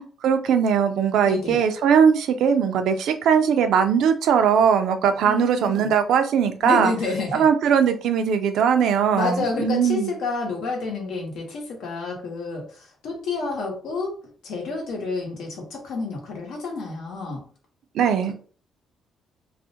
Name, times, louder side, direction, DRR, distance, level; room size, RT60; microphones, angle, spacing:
voice 1, 0.0-6.9 7.3-10.1 17.9-18.3, right 7 dB, 80° right, 8 dB, 0.3 m, -20 dB
voice 2, 1.3-1.6 5.2-5.9 6.6-7.4 9.1-17.4, left 3 dB, 80° left, 1 dB, 0.8 m, -29 dB
2.3 x 2.1 x 2.7 m, 0.42 s
cardioid pair, 90°, 0 cm